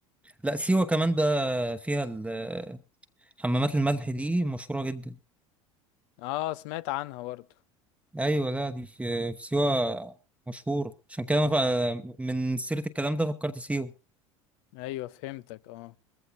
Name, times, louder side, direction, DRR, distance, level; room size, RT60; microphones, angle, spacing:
voice 1, 0.4-2.8 3.4-5.2 8.1-10.1 10.5-13.9, right 1 dB, 5° right, 1.0 m, -28 dB
voice 2, 6.2-7.4 14.7-15.9, left 17 dB, 60° left, 0.6 m, -35 dB
21.5 x 15.0 x 2.6 m
hypercardioid pair, 75°, 17 cm